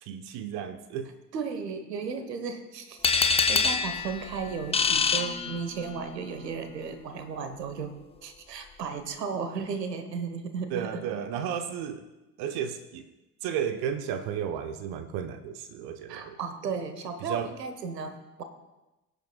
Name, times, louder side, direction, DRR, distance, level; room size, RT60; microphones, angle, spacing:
voice 1, 0.0-1.1 10.7-12.0 12.4-13.0 13.4-16.4 17.2-17.5, right 8 dB, 50° right, 9 dB, 1.0 m, -33 dB
voice 2, 1.3-7.9 8.2-11.0 16.1-18.4, right 5 dB, 75° right, 9 dB, 1.2 m, -35 dB
sound 1, 3.0-6.0, left 5 dB, 10° left, 0.6 m, -26 dB
23.0 x 8.1 x 2.3 m, 1.0 s
figure-of-eight pair, 60°, 49 cm